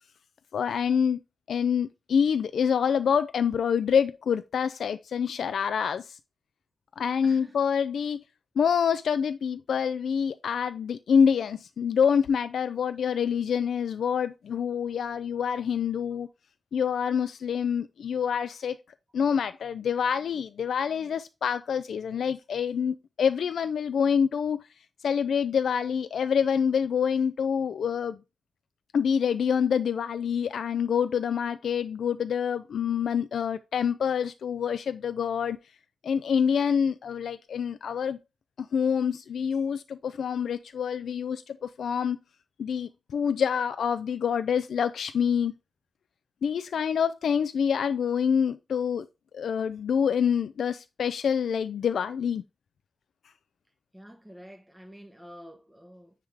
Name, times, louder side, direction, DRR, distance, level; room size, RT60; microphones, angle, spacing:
voice 1, 0.5-1.2 1.5-6.2 7.0-8.2 8.6-16.3 16.7-18.8 19.1-24.6 25.0-28.2 28.9-35.6 36.0-38.2 38.6-42.2 42.6-45.5 46.4-49.1 49.3-52.4, left 7 dB, 85° left, 0.4 m, -26 dB
voice 2, 7.2-7.5 53.9-56.1, equal, 5° right, 1.0 m, -48 dB
9.6 x 3.7 x 3.4 m
wide cardioid pair, 170°, 0 cm